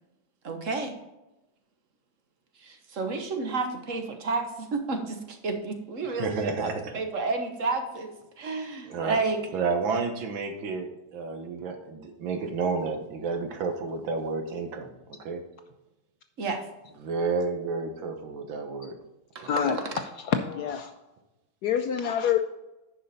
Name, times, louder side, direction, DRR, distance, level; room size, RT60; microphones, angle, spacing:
voice 1, 0.4-1.0 2.6-8.1 8.4-9.4 16.4-16.6 19.3-19.9, right 3 dB, 45° right, 5 dB, 1.2 m, -31 dB
voice 2, 6.0-7.0 8.9-14.9 15.2-15.4 16.9-19.0 19.4-19.8, right 4 dB, 75° right, 6 dB, 1.9 m, -31 dB
voice 3, 19.5-19.8 20.3-20.9 21.6-22.5, left 8 dB, 70° left, 6 dB, 1.0 m, -26 dB
10.0 x 5.7 x 4.1 m, 0.98 s
omnidirectional pair, 2.2 m